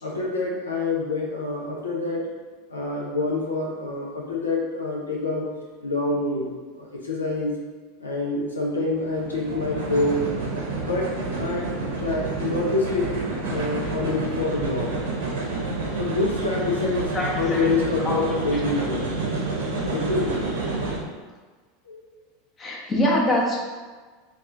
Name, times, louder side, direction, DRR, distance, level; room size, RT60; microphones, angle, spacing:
voice 1, 0.0-2.3 2.7-5.5 5.8-6.5 6.7-7.5 8.0-10.3 10.8-11.1 11.4-11.7 12.0-15.0 16.0-19.1 19.8-20.4 21.9-22.0, left 3 dB, 85° left, -3 dB, 0.5 m, -26 dB
sound 1, 8.9-21.0, right 3 dB, 70° right, 0.7 m, -29 dB
voice 2, 17.1-18.2 18.5-18.6 22.6-23.6, left 1 dB, 25° left, -2 dB, 0.8 m, -25 dB
3.0 x 2.3 x 3.5 m, 1.4 s
figure-of-eight pair, 85°, 0 cm